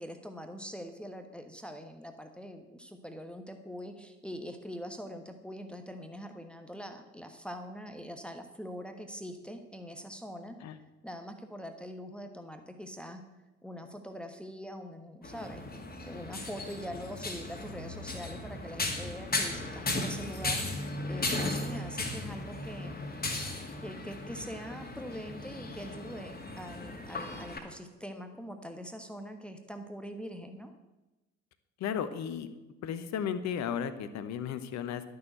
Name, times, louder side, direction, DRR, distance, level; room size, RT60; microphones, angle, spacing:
voice 1, 0.0-10.6 11.0-13.2 13.6-15.6 16.0-23.1 23.8-30.7, equal, 5° left, 6 dB, 1.3 m, -43 dB
sound 1, 15.2-27.6, left 2 dB, 25° left, 2.5 m, -36 dB
voice 2, 31.8-32.5 32.8-35.0, left 8 dB, 50° left, 12 dB, 1.1 m, -34 dB
12.5 x 6.6 x 7.9 m, 1.1 s
figure-of-eight pair, 50°, 36 cm